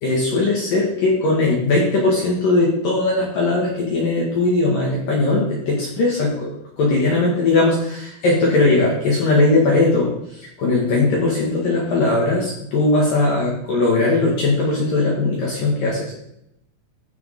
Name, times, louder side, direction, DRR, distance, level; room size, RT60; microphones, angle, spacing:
voice 1, 0.0-6.5 6.8-16.1, left 2 dB, 55° left, -4 dB, 3.2 m, -19 dB
16.0 x 6.7 x 3.7 m, 0.77 s
omnidirectional pair, 5.7 m